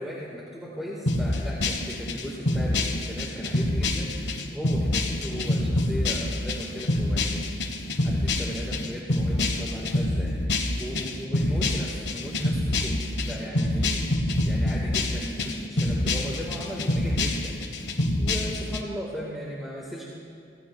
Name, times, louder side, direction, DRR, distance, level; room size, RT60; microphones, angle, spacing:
voice 1, 0.0-10.4 10.8-17.6 18.2-20.0, equal, ahead, -5 dB, 1.7 m, -37 dB
sound 1, 1.1-18.8, left 1 dB, 90° left, 1.3 m, -26 dB
25.0 x 16.5 x 2.4 m, 2.6 s
head